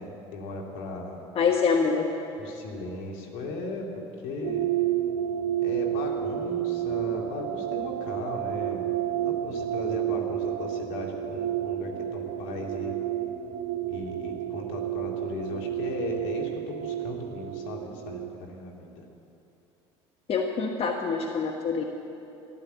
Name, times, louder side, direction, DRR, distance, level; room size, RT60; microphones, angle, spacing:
voice 1, 0.0-1.2 2.4-3.8 4.2-4.7 5.6-9.0 9.2-12.9 13.9-19.1, left 3 dB, 70° left, 0 dB, 2.5 m, -37 dB
voice 2, 1.3-2.1 20.3-21.8, left 5 dB, 40° left, 2 dB, 1.3 m, -25 dB
sound 1, 4.4-18.3, right 11 dB, 45° right, 1.0 m, -30 dB
13.5 x 12.0 x 8.1 m, 2.9 s
hypercardioid pair, 75°, 15 cm